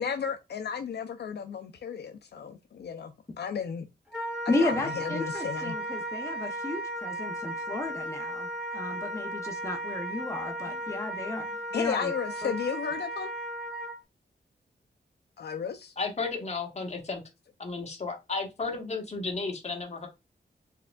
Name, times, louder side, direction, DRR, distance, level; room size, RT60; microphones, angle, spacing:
voice 1, 0.0-3.9 4.5-5.8 11.7-13.3 15.4-15.9, left 7 dB, 70° left, 0.5 m, -34 dB
Wind instrument woodwind instrument, 4.1-14.0, right 1 dB, 5° right, 2.0 m, -35 dB
voice 2, 4.5-8.5 8.7-11.4 11.7-12.1 12.4-12.5, left 2 dB, 15° left, 0.7 m, -33 dB
voice 3, 16.0-17.2 17.6-20.1, left 4 dB, 40° left, 1.4 m, -33 dB
4.6 x 3.5 x 2.3 m
wide cardioid pair, 125°, 18 cm